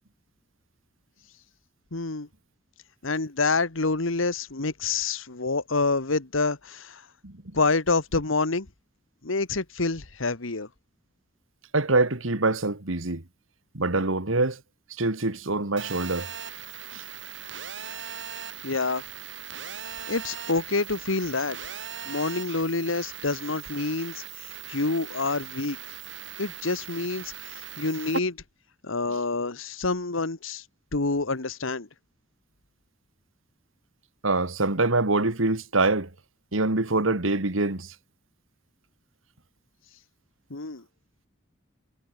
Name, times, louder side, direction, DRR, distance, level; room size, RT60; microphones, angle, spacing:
voice 1, 1.9-2.3 3.0-7.0 7.5-8.7 9.2-10.7 18.6-19.0 20.1-21.6 22.1-25.8 26.4-28.4 28.8-30.6 30.9-31.9 40.5-40.8, left 3 dB, 80° left, 1.6 m, -27 dB
voice 2, 11.7-13.2 13.7-14.6 15.0-16.3 16.9-17.0 34.2-36.1 36.5-37.9, right 2 dB, 85° right, 2.3 m, -24 dB
Telephone, 15.8-28.2, right 7 dB, 65° right, 7.8 m, -39 dB
head